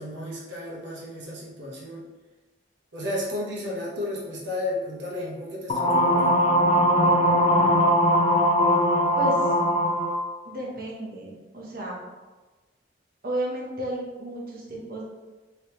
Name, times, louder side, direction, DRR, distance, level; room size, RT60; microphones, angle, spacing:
voice 1, 0.0-2.0 2.9-6.4, left 1 dB, 90° right, -5 dB, 0.9 m, -33 dB
sound 1, 5.7-10.2, equal, 30° left, 0.4 m, -20 dB
voice 2, 9.2-9.6 10.4-12.0 13.2-15.0, right 1 dB, 55° right, -3 dB, 0.9 m, -32 dB
3.4 x 3.0 x 3.0 m, 1.2 s
head